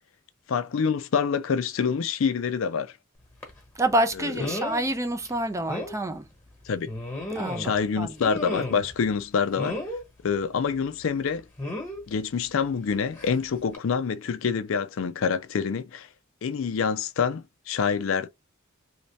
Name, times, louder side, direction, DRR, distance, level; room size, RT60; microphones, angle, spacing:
voice 1, 0.5-2.9 4.2-4.5 6.7-6.9 7.6-9.8 10.2-11.4 12.1-16.1 16.4-18.3, left 6 dB, 70° left, 0.4 m, -26 dB
sound 1, 3.4-3.6 4.4-4.8 5.2-5.3 5.7-5.9 6.9-7.8 8.2-8.9 9.6-10.0 11.6-12.0 13.2-13.4 13.7-13.8, left 1 dB, 10° left, 1.2 m, -33 dB
voice 2, 3.8-6.3 7.3-8.1, right 1 dB, 15° right, 0.4 m, -27 dB
3.2 x 2.7 x 3.2 m
head